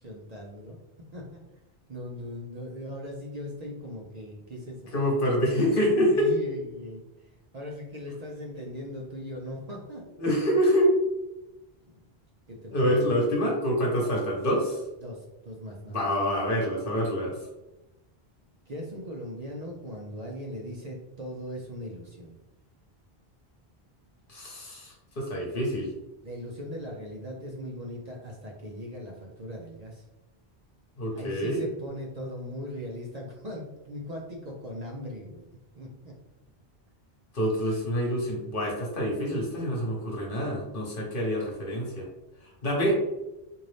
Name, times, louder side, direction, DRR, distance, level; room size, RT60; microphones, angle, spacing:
voice 1, 0.0-0.8 1.1-1.4 1.9-4.9 6.1-10.0 12.5-13.1 15.0-16.1 18.7-22.4 26.2-30.0 31.1-35.5 35.8-36.1, equal, 45° right, -1 dB, 0.7 m, -39 dB
voice 2, 4.9-6.3 10.2-10.9 12.7-14.8 15.9-17.3 24.3-25.9 31.0-31.6 37.3-42.1 42.6-43.0, equal, 60° left, -1 dB, 1.2 m, -26 dB
3.9 x 2.7 x 3.3 m, 0.97 s
omnidirectional pair, 1.0 m